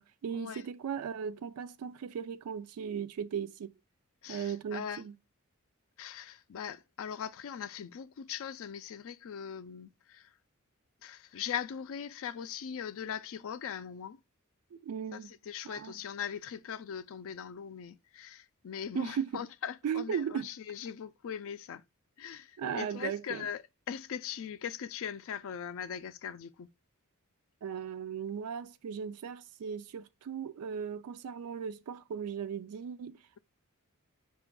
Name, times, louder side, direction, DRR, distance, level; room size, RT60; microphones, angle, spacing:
voice 1, 0.0-3.7 4.3-5.2 14.7-15.3 15.6-16.0 18.9-19.4 19.8-20.5 22.6-23.5 27.6-33.4, right 7 dB, 80° right, 0.3 m, -37 dB
voice 2, 4.2-5.0 6.0-10.3 11.0-14.2 15.1-21.8 22.2-23.6 23.9-26.7, left 8 dB, 65° left, 0.4 m, -40 dB
5.8 x 2.4 x 3.7 m
head